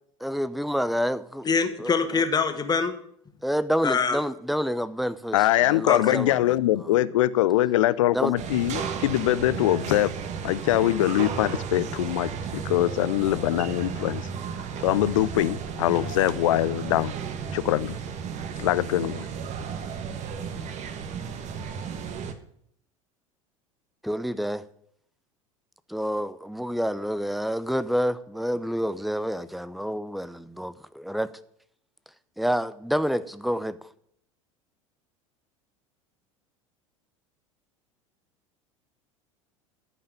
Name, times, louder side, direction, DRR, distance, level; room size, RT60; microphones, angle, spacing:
voice 1, 0.2-1.5 1.8-2.2 3.4-6.5 6.8-6.9 8.1-8.3 24.0-24.6 25.9-31.3 32.4-33.8, equal, ahead, 0.7 m, -28 dB
voice 2, 1.4-2.9 3.8-4.2 5.9-6.2, left 5 dB, 25° left, 1.9 m, -24 dB
voice 3, 5.3-10.1 10.4-14.2 14.8-17.1 17.5-18.0 18.6-19.3, left 14 dB, 70° left, 0.7 m, -23 dB
sound 1, 8.4-22.3, right 6 dB, 40° right, 1.6 m, -34 dB
14.0 x 5.6 x 9.2 m
figure-of-eight pair, 75°, 17 cm